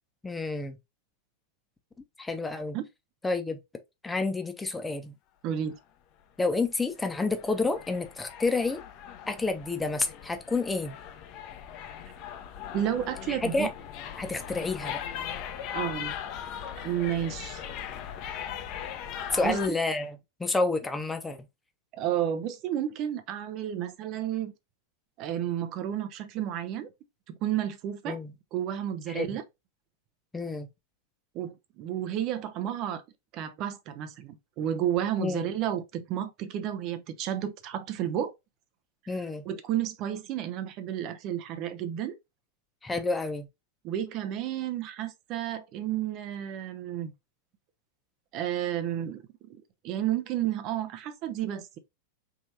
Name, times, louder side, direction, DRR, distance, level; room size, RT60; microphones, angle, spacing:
voice 1, 0.2-0.8 2.2-2.8 3.2-3.6 4.0-5.1 6.4-8.8 9.3-11.0 13.3-13.7 14.2-15.0 19.3-21.5 28.1-28.3 29.1-29.4 30.3-30.7 35.2-35.5 39.1-39.4 42.8-43.5, left 3 dB, 10° left, 0.8 m, -29 dB
voice 2, 5.4-5.8 12.7-13.7 15.7-16.1 16.8-17.6 19.4-19.6 21.9-24.5 25.2-26.9 27.3-28.2 28.5-29.4 31.3-33.0 33.3-38.3 39.4-42.1 43.8-47.1 48.3-49.2 49.5-51.8, right 11 dB, 40° right, 0.7 m, -31 dB
sound 1, 6.5-19.7, left 9 dB, 40° left, 0.7 m, -39 dB
4.7 x 3.2 x 2.7 m
figure-of-eight pair, 90°, 0 cm